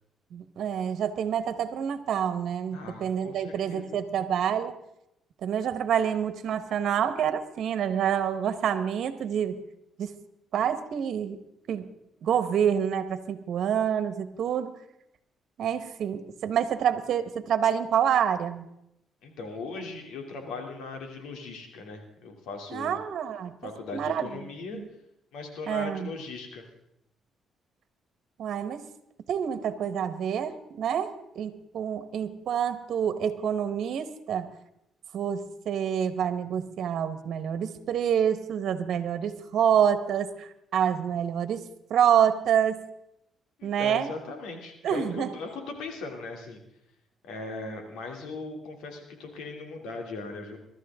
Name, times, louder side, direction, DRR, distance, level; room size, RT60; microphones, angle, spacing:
voice 1, 0.3-4.8 5.4-9.6 10.0-10.1 10.5-11.4 11.7-11.9 12.2-14.7 15.6-18.7 22.7-23.6 23.9-24.3 24.7-24.9 25.7-26.1 28.4-28.8 29.3-34.5 35.1-41.6 41.9-42.8 43.6-44.1 44.8-45.3, right 8 dB, 70° right, 10 dB, 1.4 m, -27 dB
voice 2, 2.7-4.0 19.2-23.0 23.6-24.8 25.3-26.6 43.6-46.6 47.3-50.6, left 3 dB, 90° left, 3 dB, 3.0 m, -39 dB
23.0 x 12.5 x 3.7 m, 0.80 s
cardioid pair, 90°, 0 cm